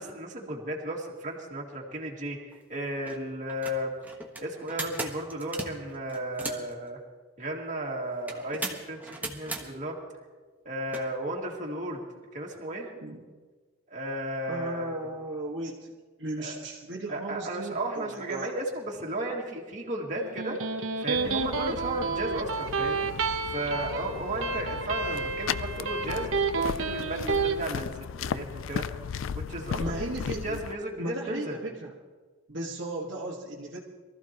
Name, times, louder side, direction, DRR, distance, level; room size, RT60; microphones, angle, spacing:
voice 1, 0.0-2.4 2.7-3.9 4.4-7.0 7.4-10.0 10.6-12.0 12.3-12.9 13.9-15.0 16.4-16.6 17.1-20.6 21.0-23.1 23.5-26.3 26.6-27.9 28.2-31.6, right 1 dB, 40° right, -2 dB, 2.3 m, -34 dB
sound 1, 2.5-2.6 3.0-3.2 3.5-6.7 8.3-9.6 10.9-11.0, right 2 dB, 10° right, 1.2 m, -37 dB
voice 2, 14.5-15.9 16.2-18.5 29.8-30.6 31.0-31.9 32.5-33.8, right 1 dB, 60° right, -4 dB, 1.6 m, -36 dB
Electric guitar, 20.2-27.6, right 4 dB, 75° right, 0.9 m, -30 dB
sound 2, 21.1-30.7, left 7 dB, 70° left, 0.4 m, -36 dB
23.0 x 14.0 x 3.0 m, 1.4 s
head